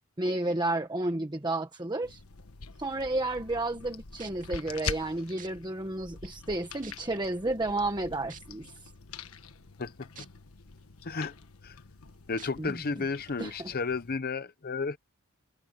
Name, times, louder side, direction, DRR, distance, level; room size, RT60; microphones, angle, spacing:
voice 1, 0.2-2.2 2.8-8.9 12.6-12.8 13.4-13.7, right 2 dB, 20° right, 1.4 m, -31 dB
sound 1, 2.0-14.2, left 5 dB, 85° left, 1.4 m, -44 dB
sound 2, 3.8-3.9 4.2-4.5 5.4-5.5 6.2-6.3 6.8-7.2 8.3-8.4 10.2-10.3 10.8-10.9 12.4-12.5 13.3-13.4, right 7 dB, 40° right, 2.7 m, -47 dB
voice 2, 11.0-11.4 11.6-11.8 12.3-15.0, left 4 dB, 45° left, 0.8 m, -33 dB
head